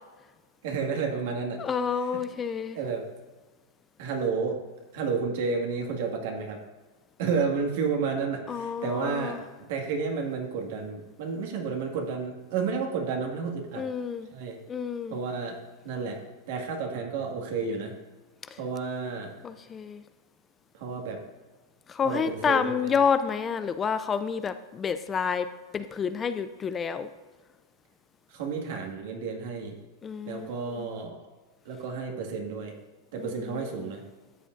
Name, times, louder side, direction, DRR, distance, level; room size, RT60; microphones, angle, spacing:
voice 1, 0.6-1.6 2.1-2.2 2.7-3.0 4.0-4.6 4.9-6.6 7.2-13.9 14.3-14.6 15.1-15.6 15.8-16.2 16.5-18.0 18.6-19.3 20.7-21.2 22.0-22.9 28.3-29.7 30.3-31.2 31.7-32.7 33.1-34.0, right 5 dB, 65° right, 1 dB, 1.9 m, -31 dB
voice 2, 1.6-2.8 8.5-9.4 13.7-14.3 14.7-15.2 18.5-18.6 19.4-20.0 21.9-25.5 25.7-27.1 30.0-30.5 33.2-33.9, left 6 dB, 20° left, 11 dB, 0.4 m, -29 dB
13.0 x 7.6 x 2.6 m, 1.3 s
hypercardioid pair, 125°, 0 cm